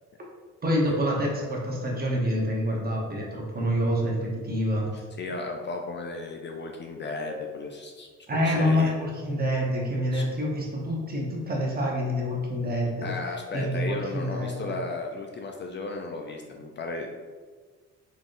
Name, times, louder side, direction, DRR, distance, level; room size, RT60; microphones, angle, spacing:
voice 1, 0.6-4.9 8.3-13.1 13.5-14.8, equal, 30° right, -2 dB, 1.0 m, -27 dB
voice 2, 4.9-8.9 10.1-10.2 13.0-17.1, left 3 dB, 40° left, 2 dB, 0.5 m, -35 dB
3.9 x 3.5 x 2.5 m, 1.5 s
cardioid pair, 90°, 30 cm